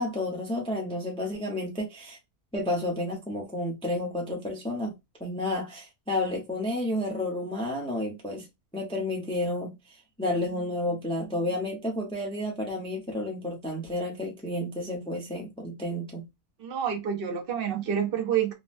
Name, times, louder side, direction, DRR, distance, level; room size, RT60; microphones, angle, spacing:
voice 1, 0.0-2.2 2.5-4.9 5.2-8.4 8.7-16.2, left 1 dB, 5° left, 0.7 m, -31 dB
voice 2, 16.6-18.5, right 8 dB, 50° right, 0.8 m, -28 dB
3.9 x 2.2 x 2.5 m
omnidirectional pair, 1.6 m